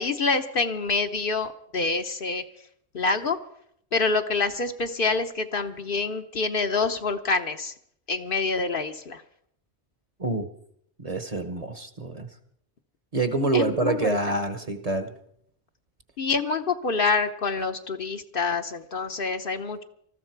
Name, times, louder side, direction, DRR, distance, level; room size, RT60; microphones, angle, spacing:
voice 1, 0.0-2.4 2.9-3.4 3.9-7.7 8.1-9.2 13.5-14.2 16.2-19.8, left 4 dB, 55° left, 7 dB, 1.0 m, -26 dB
voice 2, 11.0-12.3 13.1-15.1, right 3 dB, 35° right, 8 dB, 1.0 m, -26 dB
20.0 x 13.5 x 4.6 m, 0.70 s
omnidirectional pair, 1.2 m